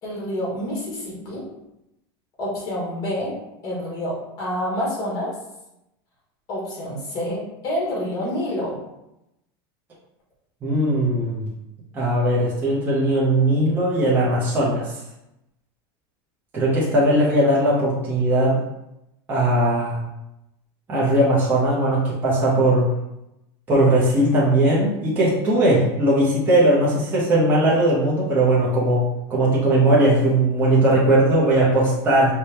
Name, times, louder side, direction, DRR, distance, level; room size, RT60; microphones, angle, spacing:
voice 1, 0.0-1.4 2.4-3.3 3.6-5.3 6.5-8.8, left 1 dB, 30° left, -4 dB, 1.5 m, -28 dB
voice 2, 10.6-11.5 11.9-14.8 16.5-18.6 19.3-20.0 20.9-22.8 23.7-29.0 29.3-32.4, right 1 dB, 15° right, -7 dB, 0.7 m, -19 dB
4.9 x 2.2 x 2.8 m, 0.88 s
supercardioid pair, 165°, 12 cm